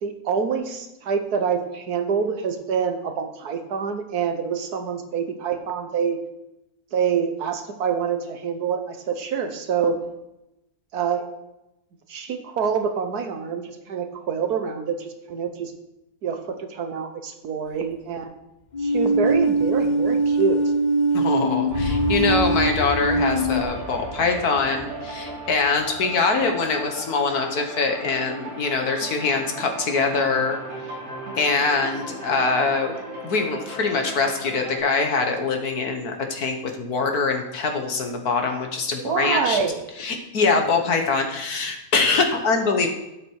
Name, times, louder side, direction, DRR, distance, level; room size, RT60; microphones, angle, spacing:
voice 1, 0.0-6.2 6.9-10.0 10.9-11.3 12.1-15.7 16.2-18.3 18.8-20.6 39.0-39.8, right 6 dB, 85° right, 7 dB, 1.7 m, -26 dB
sound 1, 18.7-23.6, right 2 dB, 45° left, 0.6 m, -22 dB
voice 2, 21.1-30.6 31.4-32.9 33.2-39.6 40.0-42.9, left 4 dB, 80° left, 4 dB, 1.9 m, -23 dB
sound 2, 21.7-34.8, right 1 dB, 70° right, 3.4 m, -35 dB
12.0 x 7.9 x 4.8 m, 0.92 s
omnidirectional pair, 1.6 m